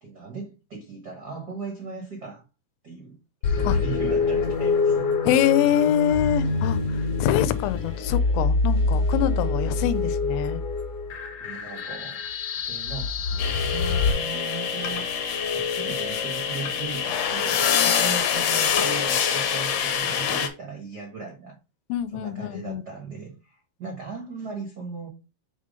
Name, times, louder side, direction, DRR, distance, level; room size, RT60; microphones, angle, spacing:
voice 1, 0.0-2.4 2.8-3.2 3.5-5.0 11.4-12.2 12.6-15.1 15.5-21.6 22.1-25.1, right 4 dB, 80° right, 0.9 m, -38 dB
sound 1, 3.4-14.1, left 4 dB, 50° left, 2.0 m, -25 dB
voice 2, 5.2-6.8 7.2-10.6 21.9-22.8, left 11 dB, 85° left, 2.4 m, -24 dB
sound 2, 13.4-20.5, left 7 dB, 70° left, 2.2 m, -25 dB
6.1 x 3.7 x 5.0 m
omnidirectional pair, 4.1 m